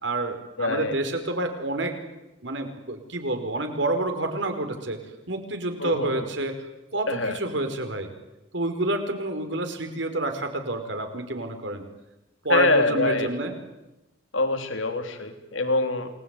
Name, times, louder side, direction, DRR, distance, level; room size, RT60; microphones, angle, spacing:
voice 1, 0.0-1.9 2.4-5.0 5.3-6.6 6.9-8.1 8.5-11.8 12.4-13.5, right 2 dB, 65° right, 6 dB, 4.9 m, -28 dB
voice 2, 0.6-1.0 5.8-6.3 7.1-7.4 12.5-13.3 14.3-16.1, left 2 dB, 90° left, 7 dB, 3.5 m, -24 dB
28.5 x 21.0 x 9.8 m, 0.98 s
head